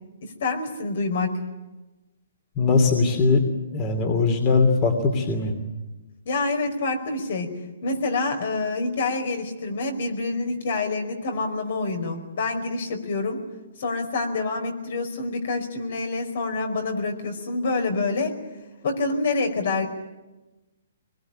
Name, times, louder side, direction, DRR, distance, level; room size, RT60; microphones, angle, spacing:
voice 1, 0.2-1.4 6.3-7.5 7.8-13.4 13.8-18.4 18.8-19.9, left 3 dB, 60° left, 5 dB, 5.2 m, -27 dB
voice 2, 2.6-3.4 3.7-5.5, left 4 dB, 25° left, 4 dB, 2.9 m, -20 dB
24.0 x 21.5 x 10.0 m, 1.1 s
hypercardioid pair, 155°, 0 cm